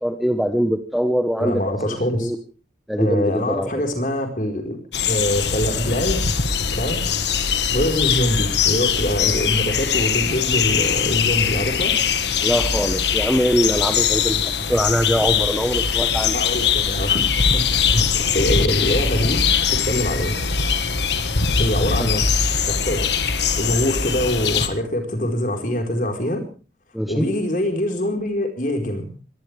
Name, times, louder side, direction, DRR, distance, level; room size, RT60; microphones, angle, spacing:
voice 1, 0.0-2.4 2.9-3.7 12.4-16.4 22.0-22.1 26.9-27.3, equal, ahead, 7 dB, 1.2 m, -22 dB
voice 2, 1.4-2.3 3.0-4.8 5.1-6.3 6.7-7.2 7.7-12.0 16.3-17.7 17.9-18.1 18.3-20.4 21.6-22.3 22.7-23.0 23.5-26.4 27.1-29.1, left 1 dB, 45° left, 5 dB, 4.6 m, -24 dB
sound 1, 4.9-24.7, left 6 dB, 75° left, 1.6 m, -21 dB
23.0 x 18.0 x 3.5 m, 0.36 s
head